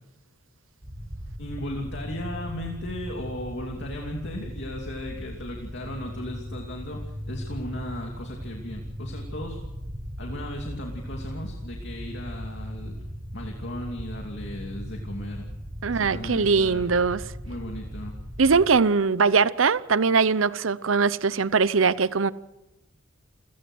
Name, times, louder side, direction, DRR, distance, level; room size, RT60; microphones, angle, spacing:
sound 1, 0.8-18.7, equal, 30° right, 2.6 m, -38 dB
voice 1, 1.4-9.6 10.2-13.0 13.3-15.5 15.9-16.9 17.4-18.2, left 1 dB, 60° left, 2.8 m, -36 dB
voice 2, 15.8-17.2 18.4-22.3, right 5 dB, 75° right, 0.8 m, -21 dB
28.5 x 17.0 x 6.3 m
head